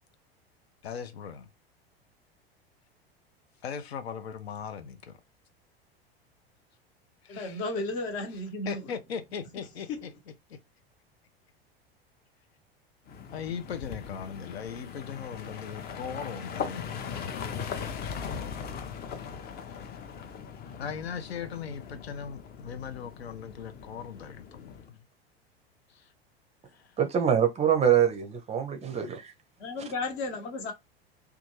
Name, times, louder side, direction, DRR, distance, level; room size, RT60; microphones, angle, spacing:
voice 1, 0.8-1.5 3.6-5.2 7.2-7.6 8.7-10.1 10.5-10.6 13.3-17.6 18.0-18.3 20.8-25.0 25.9-26.1 26.7-27.0, left 7 dB, 80° left, 0.5 m, -39 dB
voice 2, 7.3-8.8 9.9-10.0 29.6-30.7, left 2 dB, 50° left, 1.0 m, -33 dB
sound 1, 13.1-24.9, left 7 dB, 30° left, 0.5 m, -39 dB
voice 3, 27.0-29.3, right 9 dB, 20° right, 0.5 m, -24 dB
2.5 x 2.3 x 3.0 m
hypercardioid pair, 85°, 31 cm